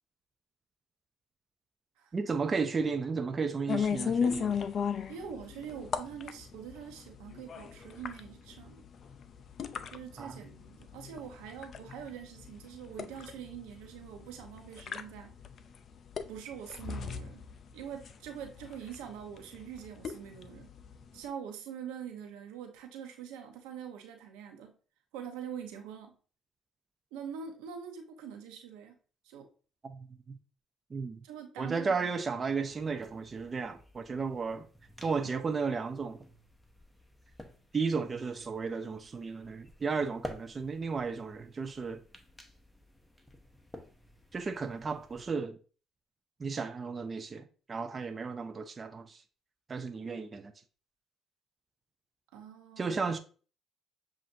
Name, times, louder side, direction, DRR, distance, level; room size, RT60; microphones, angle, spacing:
voice 1, 2.1-4.5 10.2-10.4 29.8-30.4 30.9-31.2 31.6-34.7 35.0-36.2 37.7-42.0 44.3-45.6 46.4-49.2 49.7-50.5 52.8-53.2, right 5 dB, 35° right, 0.4 m, -34 dB
sound 1, 3.7-21.2, left 6 dB, 50° left, 0.4 m, -37 dB
voice 2, 5.1-8.8 9.9-15.3 16.3-17.4 17.7-20.7 21.1-24.7 25.1-26.1 27.1-28.9 29.2-29.5 31.2-32.1 52.3-53.2, right 8 dB, 85° right, 0.7 m, -44 dB
sound 2, 32.7-45.3, left 1 dB, 5° left, 0.8 m, -52 dB
7.2 x 2.5 x 2.5 m
supercardioid pair, 70°, 0 cm